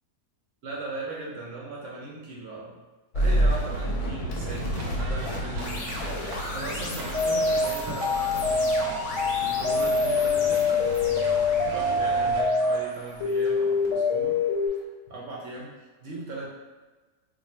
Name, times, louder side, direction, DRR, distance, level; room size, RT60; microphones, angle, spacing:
voice 1, 0.6-2.8 3.1-5.9 6.5-9.0 9.4-10.9 11.7-14.4 15.1-16.5, right 2 dB, 60° right, -4 dB, 0.9 m, -38 dB
sound 1, 3.1-14.2, equal, 85° left, 1.2 m, -31 dB
sound 2, 4.7-12.4, right 1 dB, 80° right, 1.1 m, -38 dB
sound 3, 7.1-12.8 13.2-14.7, left 3 dB, 65° left, 1.0 m, -25 dB
2.6 x 2.6 x 4.1 m, 1.3 s
omnidirectional pair, 1.6 m